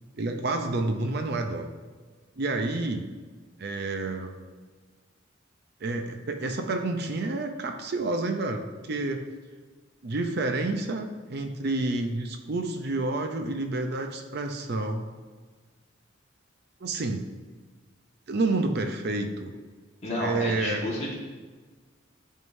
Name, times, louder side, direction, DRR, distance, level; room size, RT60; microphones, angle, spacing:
voice 1, 0.2-1.7 2.4-3.1 3.6-4.3 5.8-9.3 10.0-15.1 16.8-17.3 18.3-19.5 20.2-20.9, right 2 dB, 55° right, 6 dB, 0.5 m, -29 dB
voice 2, 20.0-21.1, left 1 dB, 35° left, -4 dB, 1.6 m, -30 dB
11.0 x 3.6 x 2.6 m, 1.4 s
head